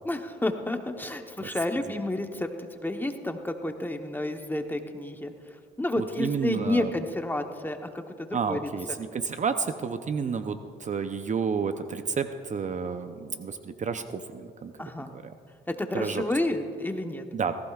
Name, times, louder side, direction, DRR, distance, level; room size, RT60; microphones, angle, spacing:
voice 1, 0.0-2.5 2.8-5.3 5.8-8.7 14.8-15.1 15.8-17.2, left 1 dB, 10° left, 5 dB, 1.0 m, -30 dB
voice 2, 6.0-6.9 8.3-14.7 15.1-15.3 15.9-16.2 17.3-17.6, right 6 dB, 40° right, 9 dB, 0.6 m, -30 dB
18.0 x 15.0 x 2.4 m, 2.2 s
cardioid pair, 90°, 20 cm